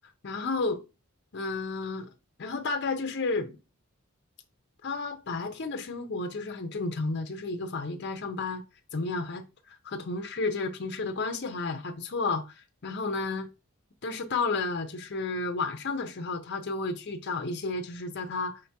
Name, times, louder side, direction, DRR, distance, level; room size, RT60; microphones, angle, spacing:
voice 1, 0.2-0.8 1.3-2.1 2.4-3.6 4.8-8.6 8.9-13.5 14.0-18.6, left 3 dB, 55° left, 0.6 m, -32 dB
5.1 x 3.3 x 2.8 m
head